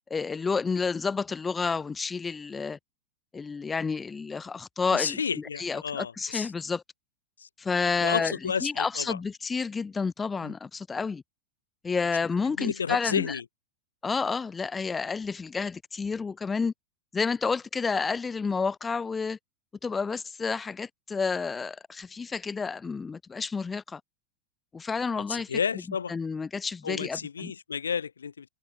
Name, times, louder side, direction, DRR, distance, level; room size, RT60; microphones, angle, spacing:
voice 1, 0.1-2.8 3.3-6.8 7.6-11.2 11.8-13.4 14.0-16.7 17.1-19.4 19.8-24.0 24.7-25.6 26.1-27.5, left 5 dB, 15° left, 2.8 m, -30 dB
voice 2, 4.9-6.5 7.4-7.5 8.0-9.2 10.4-10.5 12.6-13.4 25.3-26.1 26.8-28.5, left 6 dB, 70° left, 3.3 m, -31 dB
figure-of-eight pair, 90°, 0 cm